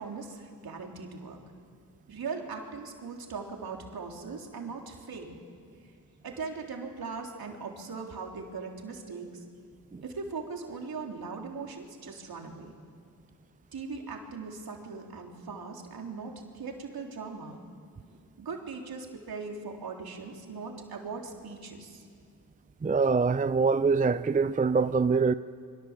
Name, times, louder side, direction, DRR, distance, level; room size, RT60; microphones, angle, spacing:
voice 1, 0.0-1.4 2.1-5.4 6.2-9.4 10.0-12.7 13.7-17.6 18.4-22.1, right 4 dB, 65° right, 3.5 m, -39 dB
voice 2, 22.8-25.3, right 4 dB, 20° right, 0.5 m, -24 dB
26.0 x 23.0 x 7.4 m
cardioid pair, 55°, 39 cm